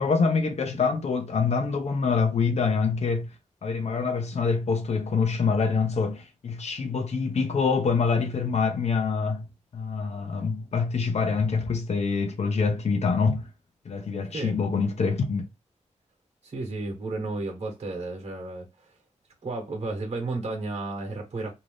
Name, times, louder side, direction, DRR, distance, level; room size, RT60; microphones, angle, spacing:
voice 1, 0.0-3.3 3.6-9.5 9.7-13.5 13.8-15.4, left 5 dB, 60° left, 0.6 m, -25 dB
voice 2, 16.4-19.0 19.4-21.5, right 2 dB, 55° right, 1.1 m, -33 dB
2.7 x 2.4 x 3.3 m
wide cardioid pair, 175°, 13 cm